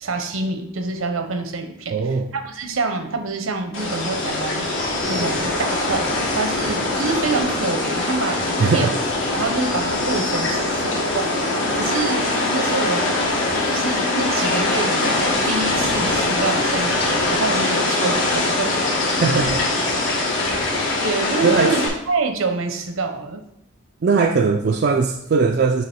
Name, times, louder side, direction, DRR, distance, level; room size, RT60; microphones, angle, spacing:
voice 1, 0.0-2.0 2.3-4.7 5.1-8.9 9.3-13.1 13.7-18.8 21.0-23.4, right 3 dB, 80° right, 6 dB, 0.8 m, -26 dB
voice 2, 1.9-2.3 8.6-9.0 19.2-19.7 21.4-21.7 24.0-25.8, right 4 dB, 50° right, 3 dB, 0.3 m, -19 dB
sound 1, 3.7-21.9, left 2 dB, 65° left, 1.5 m, -22 dB
7.4 x 3.0 x 4.4 m, 0.75 s
head